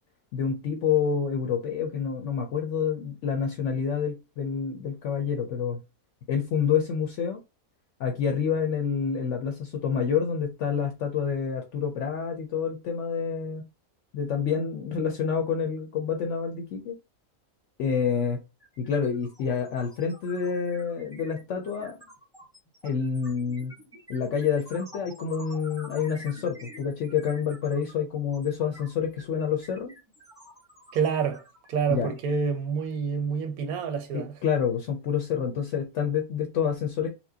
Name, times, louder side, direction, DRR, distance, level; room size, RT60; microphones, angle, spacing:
voice 1, 0.3-5.8 6.3-7.4 8.0-13.7 14.1-17.0 17.8-18.4 18.8-22.0 22.8-23.7 24.1-29.9 31.9-32.1 34.1-37.1, left 7 dB, 65° left, 0.8 m, -28 dB
sound 1, 18.1-18.3 18.6-32.9, equal, 5° right, 0.9 m, -49 dB
voice 2, 30.9-34.3, right 6 dB, 85° right, 1.1 m, -28 dB
4.3 x 2.1 x 2.7 m
omnidirectional pair, 1.5 m